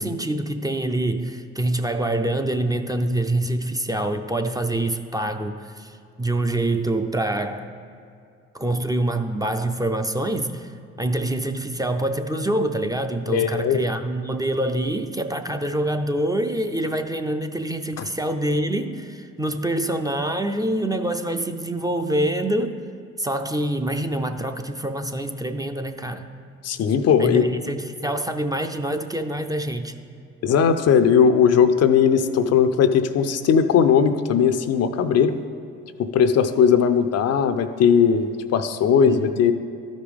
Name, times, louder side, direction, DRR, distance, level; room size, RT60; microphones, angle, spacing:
voice 1, 0.0-7.7 8.5-10.7 11.0-22.8 23.2-26.3 27.2-29.9 39.0-39.2, right 1 dB, 10° right, 6 dB, 0.5 m, -25 dB
voice 2, 13.3-13.8 18.0-18.1 26.6-27.5 30.4-35.4 36.0-39.5, left 7 dB, 60° left, 9 dB, 0.6 m, -18 dB
12.5 x 5.2 x 3.4 m, 2.4 s
hypercardioid pair, 55°, 29 cm